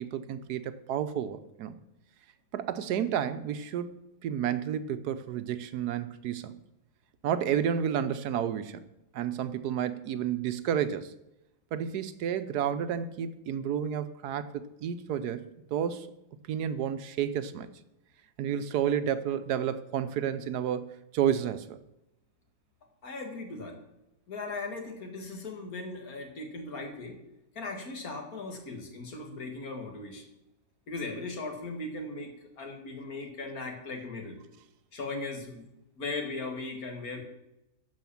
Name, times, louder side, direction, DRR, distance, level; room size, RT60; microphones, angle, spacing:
voice 1, 0.0-1.8 2.5-3.9 4.2-6.5 7.2-8.8 9.1-11.1 11.7-16.1 16.5-17.7 18.4-21.8, right 9 dB, 80° right, 12 dB, 1.2 m, -31 dB
voice 2, 23.0-23.8 24.3-27.2 27.6-30.3 30.9-34.4 34.9-35.7 36.0-37.2, left 3 dB, 60° left, 3 dB, 2.3 m, -38 dB
12.0 x 5.1 x 7.1 m, 0.90 s
omnidirectional pair, 1.7 m